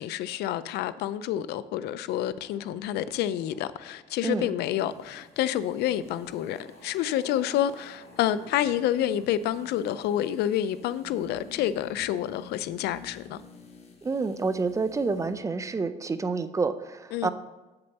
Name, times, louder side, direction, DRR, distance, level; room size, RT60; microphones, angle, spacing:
voice 1, 0.0-13.4 17.1-17.3, left 11 dB, 75° left, 0.4 m, -28 dB
sound 1, 2.4-12.3, equal, 15° left, 2.6 m, -53 dB
sound 2, 4.8-15.5 15.7-15.8, left 5 dB, 40° left, 1.3 m, -51 dB
voice 2, 14.0-17.3, right 4 dB, 20° right, 0.5 m, -28 dB
7.8 x 6.8 x 4.1 m
cardioid pair, 110°, 17 cm